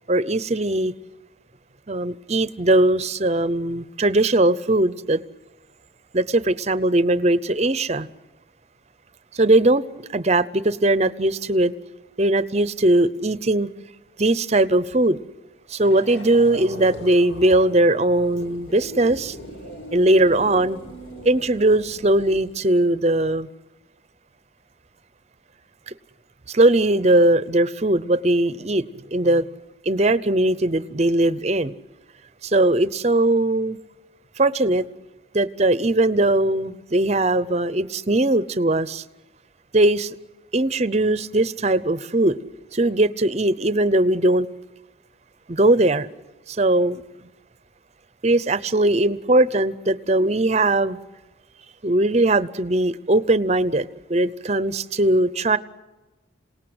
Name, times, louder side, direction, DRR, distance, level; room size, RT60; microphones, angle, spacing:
voice 1, 0.1-0.9 1.9-5.2 6.1-8.1 9.3-9.8 10.1-11.7 12.2-13.7 14.2-15.2 15.7-19.4 19.9-20.8 21.2-23.5 25.9-26.0 26.5-28.8 29.1-29.5 29.9-31.7 32.4-33.8 34.4-34.9 35.3-39.0 39.7-40.1 40.5-42.4 42.7-44.5 45.5-46.1 46.5-47.0 48.2-51.0 51.8-55.6, right 1 dB, 35° right, 0.7 m, -20 dB
sound 1, 15.8-22.5, left 1 dB, 80° left, 5.2 m, -40 dB
27.5 x 18.5 x 7.8 m
head